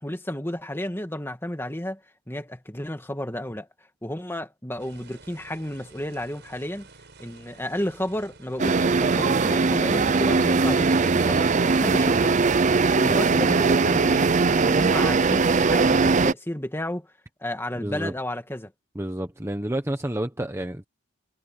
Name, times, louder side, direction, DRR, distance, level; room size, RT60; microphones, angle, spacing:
voice 1, 0.0-2.0 2.3-3.7 4.0-6.9 7.2-12.4 12.9-14.3 14.5-17.1 17.4-18.7, left 1 dB, 10° left, 2.2 m, -32 dB
sound 1, 4.8-11.9, right 3 dB, 55° right, 6.7 m, -50 dB
sound 2, 8.6-16.3, right 4 dB, 35° right, 0.5 m, -20 dB
voice 2, 17.7-18.1 18.9-20.8, right 1 dB, 15° right, 1.1 m, -29 dB
head